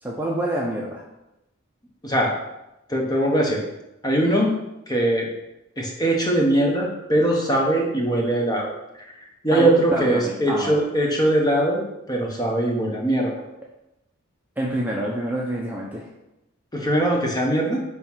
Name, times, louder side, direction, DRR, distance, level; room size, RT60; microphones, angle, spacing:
voice 1, 0.0-1.1 9.5-10.8 14.6-16.1, right 1 dB, 10° right, -3 dB, 0.8 m, -27 dB
voice 2, 2.0-2.4 2.9-3.6 4.0-4.6 4.9-5.3 5.8-8.7 9.4-13.4 16.7-17.8, right 1 dB, 20° left, -1 dB, 1.3 m, -21 dB
9.3 x 3.4 x 5.7 m, 0.90 s
head